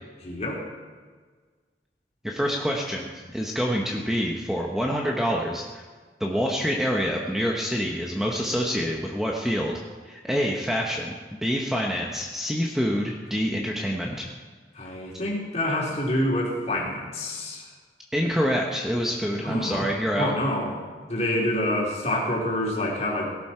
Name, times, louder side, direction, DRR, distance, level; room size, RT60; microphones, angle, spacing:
voice 1, 0.2-0.6 14.7-17.7 19.4-19.9 20.2-20.7 21.1-23.3, left 1 dB, 40° left, -4 dB, 3.5 m, -27 dB
voice 2, 2.2-5.8 6.2-9.8 10.1-14.3 18.1-20.3, equal, 5° right, -1 dB, 1.0 m, -26 dB
17.5 x 11.5 x 4.5 m, 1.5 s
head